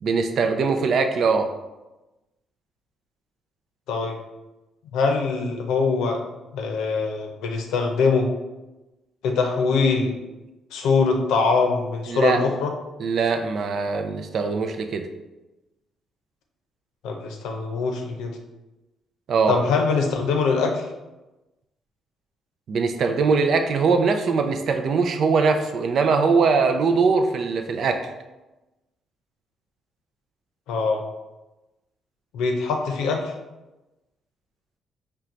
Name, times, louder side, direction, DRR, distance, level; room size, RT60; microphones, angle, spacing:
voice 1, 0.0-1.5 12.1-12.4 13.0-15.0 19.3-19.6 22.7-28.1, right 4 dB, 60° right, 6 dB, 0.4 m, -21 dB
voice 2, 4.9-6.2 6.5-8.3 9.2-10.1 10.7-12.7 17.0-18.4 19.5-20.9 30.7-31.0 32.3-33.3, left 4 dB, 90° left, 3 dB, 0.6 m, -23 dB
4.5 x 2.2 x 3.8 m, 1.0 s
cardioid pair, 90°, 0 cm